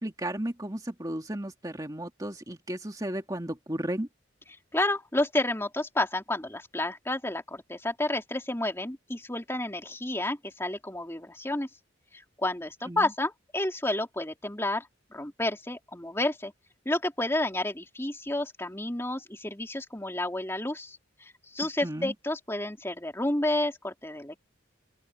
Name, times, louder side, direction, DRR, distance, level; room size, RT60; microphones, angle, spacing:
voice 1, 0.0-4.1 12.9-13.0 21.8-22.1, right 1 dB, 20° right, 2.5 m, -34 dB
voice 2, 4.7-11.7 12.1-16.5 16.8-24.4, left 1 dB, 15° left, 3.1 m, -30 dB
open air
head